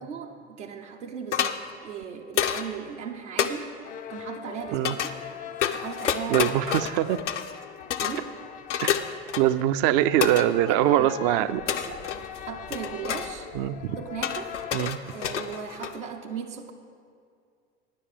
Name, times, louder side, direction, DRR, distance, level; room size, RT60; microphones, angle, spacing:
voice 1, 0.0-5.1 5.7-6.5 8.0-8.3 10.6-12.1 12.5-13.5 14.0-14.6 15.1-16.7, right 7 dB, 85° right, 1 dB, 0.8 m, -37 dB
sound 1, 1.3-1.6 2.4-2.7 3.4-3.5 4.8-5.1 5.6-7.6 7.9-8.2 8.7-9.6 10.2-10.5 11.7-12.4 12.7-13.3 14.2-16.1, left 9 dB, 85° left, 0.6 m, -28 dB
sound 2, 3.8-14.9, left 9 dB, 25° left, 0.3 m, -41 dB
voice 2, 6.3-7.2 8.8-9.0 9.4-11.6 13.5-14.0 14.7-15.0, right 13 dB, 55° right, 13 dB, 0.5 m, -23 dB
9.9 x 7.0 x 7.2 m, 2.2 s
hypercardioid pair, 75°, 35 cm